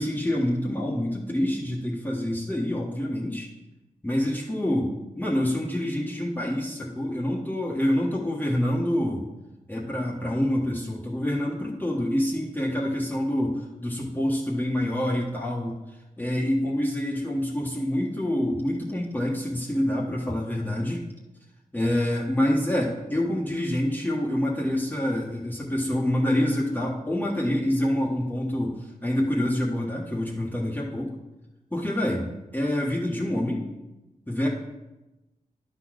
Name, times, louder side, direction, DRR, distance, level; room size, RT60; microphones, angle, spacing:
voice 1, 0.0-3.5 4.0-9.2 9.7-15.8 16.2-21.0 21.7-31.1 31.7-33.7 34.3-34.5, left 1 dB, 10° left, -4 dB, 1.4 m, -26 dB
11.0 x 4.1 x 6.4 m, 1.0 s
wide cardioid pair, 95°, 15 cm